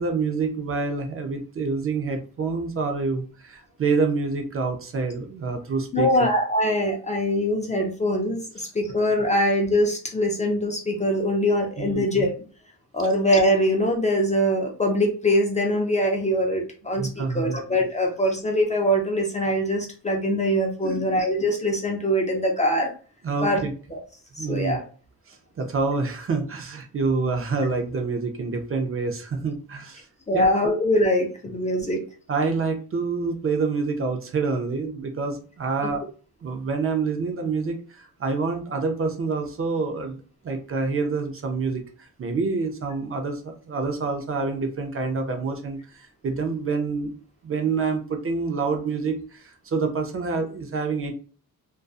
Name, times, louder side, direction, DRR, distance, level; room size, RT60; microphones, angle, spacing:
voice 1, 0.0-6.1 11.8-12.0 17.0-17.6 20.8-21.0 23.2-23.7 24.4-24.8 25.3-30.1 30.3-30.5 32.3-36.0 36.4-47.1 47.4-51.1, right 4 dB, 40° right, 4 dB, 0.5 m, -27 dB
voice 2, 5.9-12.3 12.9-22.9 23.4-23.6 23.9-24.0 24.4-24.8 30.3-32.0 35.8-35.9, equal, 20° left, 1 dB, 0.4 m, -23 dB
2.5 x 2.2 x 2.3 m, 0.39 s
cardioid pair, 115°, 36 cm